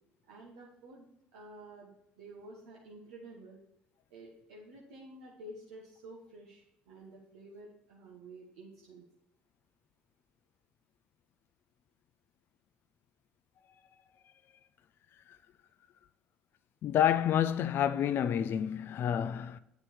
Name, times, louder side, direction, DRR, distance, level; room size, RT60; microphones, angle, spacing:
voice 1, 0.3-1.1 1.3-3.6 4.1-9.0, right 1 dB, 75° right, 1.5 m, -51 dB
voice 2, 16.8-19.6, left 9 dB, 50° left, 0.4 m, -29 dB
9.6 x 5.8 x 4.5 m
hypercardioid pair, 65°, 5 cm